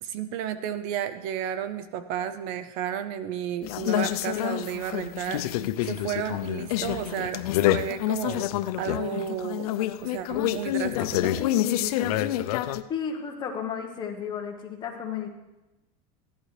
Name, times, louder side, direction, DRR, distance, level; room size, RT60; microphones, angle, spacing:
voice 1, 0.0-5.6 5.8-7.4 7.7-8.5 8.8-9.8 10.0-11.5, right 9 dB, 45° right, 12 dB, 0.5 m, -32 dB
sound 1, 3.6-12.8, left 13 dB, 85° left, 0.5 m, -27 dB
voice 2, 12.9-15.3, left 7 dB, 25° left, 2 dB, 1.2 m, -33 dB
15.0 x 11.0 x 3.3 m, 1.0 s
supercardioid pair, 165°, 19 cm